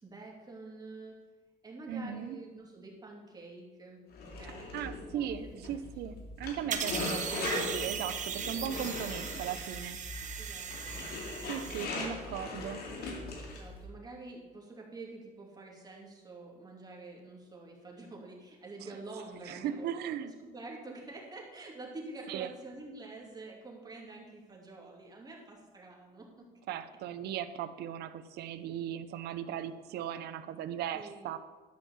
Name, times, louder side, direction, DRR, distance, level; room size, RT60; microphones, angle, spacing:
voice 1, 0.0-1.2 1.6-4.7 5.0-6.1 10.4-11.1 11.5-12.1 13.5-26.8 30.9-31.3, right 2 dB, 25° right, -1 dB, 2.8 m, -48 dB
voice 2, 1.9-2.4 4.7-10.0 11.5-12.8 19.5-20.3 22.3-22.5 26.7-31.4, right 9 dB, 75° right, 12 dB, 0.7 m, -38 dB
sound 1, 4.1-13.8, left 3 dB, 65° left, 2.5 m, -40 dB
sound 2, 6.7-11.8, right 7 dB, 45° right, 1.2 m, -38 dB
11.5 x 5.5 x 7.2 m, 1.3 s
cardioid pair, 110°, 17 cm